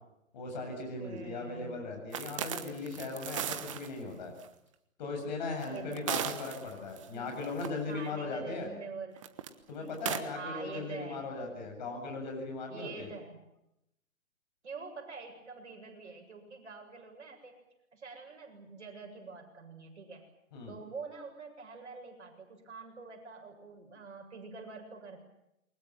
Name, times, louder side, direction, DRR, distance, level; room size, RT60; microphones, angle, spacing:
voice 1, 0.3-4.3 5.0-8.7 9.7-13.1 20.5-20.7, left 3 dB, 35° left, 3 dB, 8.0 m, -38 dB
voice 2, 1.0-1.8 5.7-6.1 7.1-7.4 7.9-9.3 9.8-9.9 10.3-11.2 12.7-13.4 14.6-17.6 17.9-20.3 20.7-25.2, right 4 dB, 55° right, 3 dB, 7.6 m, -46 dB
sound 1, 2.1-3.9 4.4-4.5 5.6-7.1 7.4-7.7 9.2-9.5 9.9-10.2, right 10 dB, 25° right, 1.2 m, -36 dB
28.5 x 23.5 x 7.6 m, 0.82 s
figure-of-eight pair, 150°, 41 cm